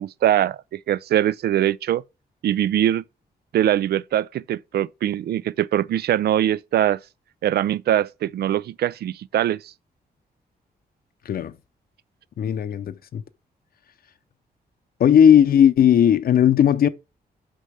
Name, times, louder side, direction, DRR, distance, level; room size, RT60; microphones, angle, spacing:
voice 1, 0.0-2.0 2.4-3.0 3.5-7.0 7.4-9.7, right 11 dB, 75° right, 0.4 m, -22 dB
voice 2, 12.4-13.2 15.0-16.9, left 9 dB, 65° left, 0.6 m, -16 dB
6.6 x 5.5 x 6.3 m
wide cardioid pair, 150°, 17 cm